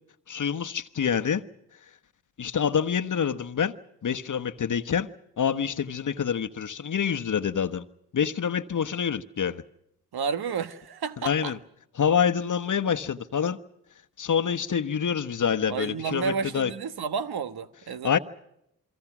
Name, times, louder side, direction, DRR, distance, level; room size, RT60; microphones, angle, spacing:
voice 1, 0.3-1.4 2.4-3.7 4.0-5.1 5.4-7.8 8.1-9.6 11.2-11.6 12.0-13.6 14.2-16.7 18.0-18.2, left 7 dB, 50° left, 1.2 m, -26 dB
voice 2, 10.1-11.5 15.7-18.2, right 6 dB, 65° right, 1.4 m, -31 dB
27.5 x 23.5 x 6.1 m
supercardioid pair, 55°, 40 cm